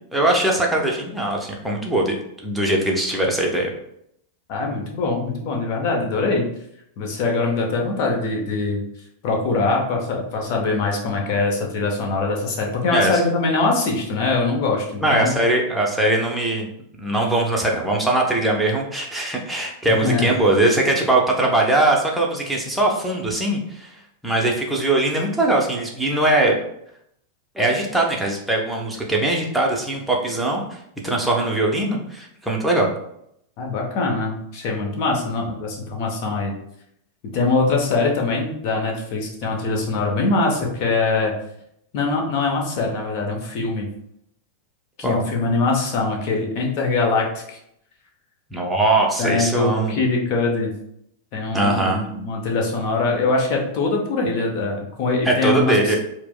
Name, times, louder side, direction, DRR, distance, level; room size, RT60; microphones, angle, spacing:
voice 1, 0.1-2.2 2.4-3.7 12.9-13.2 15.0-16.7 17.0-23.9 24.2-26.6 27.5-30.8 31.0-32.9 45.0-45.2 48.5-49.9 51.5-52.0 55.3-56.0, right 2 dB, 5° right, -2 dB, 0.7 m, -21 dB
voice 2, 4.5-6.5 7.0-8.8 9.2-15.3 19.9-20.3 33.6-36.5 37.3-41.3 41.9-43.9 45.0-47.6 49.2-50.7 51.3-56.0, left 3 dB, 45° left, 0 dB, 0.7 m, -22 dB
4.4 x 2.0 x 2.2 m, 0.74 s
figure-of-eight pair, 90°, 0 cm